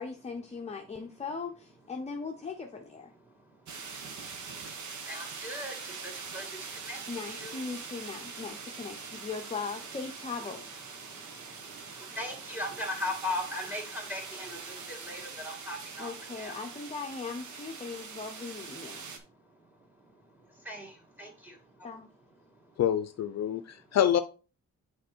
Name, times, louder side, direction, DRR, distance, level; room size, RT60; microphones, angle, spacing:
voice 1, 0.0-3.1 7.1-10.6 16.0-19.0 21.8-22.1, left 4 dB, 20° left, 3 dB, 0.7 m, -39 dB
sound 1, 3.7-19.2, right 5 dB, 75° right, 1.3 m, -43 dB
voice 2, 5.1-5.8 6.3-6.5 6.9-7.0 7.3-7.6 12.2-16.1 16.4-16.6 20.7-20.9 21.2-21.5, left 1 dB, 5° right, 2 dB, 2.3 m, -37 dB
voice 3, 22.8-24.2, left 10 dB, 60° left, 12 dB, 0.6 m, -26 dB
7.7 x 4.3 x 4.5 m, 0.35 s
wide cardioid pair, 145°, 30 cm